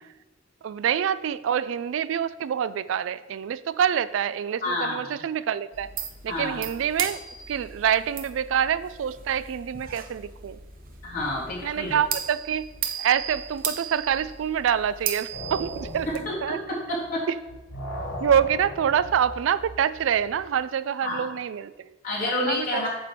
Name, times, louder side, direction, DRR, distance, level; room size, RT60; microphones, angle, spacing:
voice 1, 0.6-5.9 6.2-7.2 7.5-10.6 11.6-12.6 13.0-16.1 16.4-16.6 17.3-17.4 18.2-21.9 22.4-22.8, right 8 dB, 75° right, 16 dB, 0.3 m, -26 dB
voice 2, 4.6-5.2 6.2-6.6 11.0-12.0 16.1-17.3 21.0-21.3 22.0-22.9, left 1 dB, 45° left, -7 dB, 3.1 m, -29 dB
sound 1, 5.7-16.2, right 7 dB, 45° right, 0.8 m, -36 dB
sound 2, 15.3-17.2 17.5-20.4, equal, 80° left, 2.5 m, -38 dB
8.8 x 3.4 x 6.7 m, 1.0 s
head